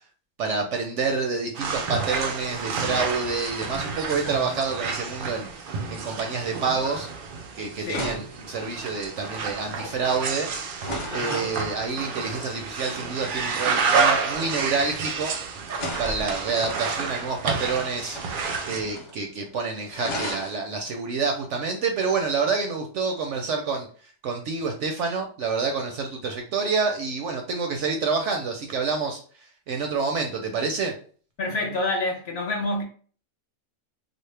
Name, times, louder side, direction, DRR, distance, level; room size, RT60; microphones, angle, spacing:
voice 1, 0.4-15.3 16.0-29.2 29.7-31.0, right 4 dB, 65° right, 0.8 m, -28 dB
sound 1, 1.5-18.8, right 5 dB, 80° right, 0.4 m, -29 dB
voice 2, 4.1-4.6 7.8-8.2 11.1-11.6 31.4-32.8, left 2 dB, 55° left, 0.9 m, -29 dB
sound 2, 7.3-7.5 7.9-11.3 13.3-15.4 15.7-17.3 18.0-19.2 19.5-19.6 19.9-20.6 22.4-22.6, equal, 35° left, 0.5 m, -37 dB
4.1 x 2.0 x 3.3 m
omnidirectional pair, 1.6 m